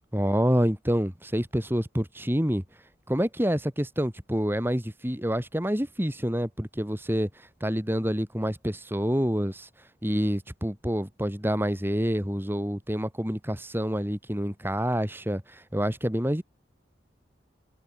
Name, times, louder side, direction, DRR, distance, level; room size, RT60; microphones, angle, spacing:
voice 1, 0.1-2.6 3.1-7.3 7.6-9.7 10.0-16.4, equal, 10° right, 4.0 m, -27 dB
head